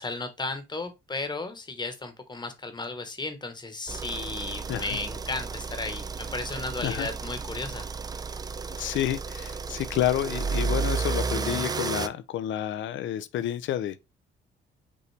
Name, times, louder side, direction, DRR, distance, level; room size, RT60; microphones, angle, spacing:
voice 1, 0.0-7.9, left 3 dB, 20° left, 1.0 m, -34 dB
sound 1, 3.9-12.1, right 5 dB, 20° right, 0.3 m, -32 dB
voice 2, 6.8-7.1 8.8-14.0, left 12 dB, 75° left, 0.5 m, -29 dB
5.3 x 2.8 x 3.3 m
cardioid pair, 90°, 20 cm